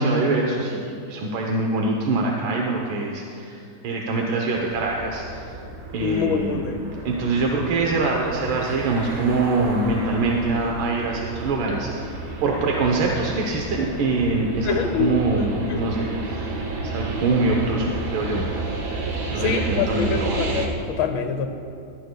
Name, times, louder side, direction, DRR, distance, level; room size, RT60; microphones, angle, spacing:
voice 1, 0.0-5.5 5.9-6.7 7.1-12.1 12.4-18.4 19.3-20.5, right 3 dB, 85° right, 0 dB, 1.7 m, -24 dB
sound 1, 4.5-20.7, right 3 dB, 60° right, 1.7 m, -31 dB
voice 2, 6.0-6.8 14.6-15.8 19.4-21.5, left 7 dB, 85° left, 7 dB, 1.5 m, -25 dB
21.0 x 12.5 x 2.2 m, 2.6 s
omnidirectional pair, 2.1 m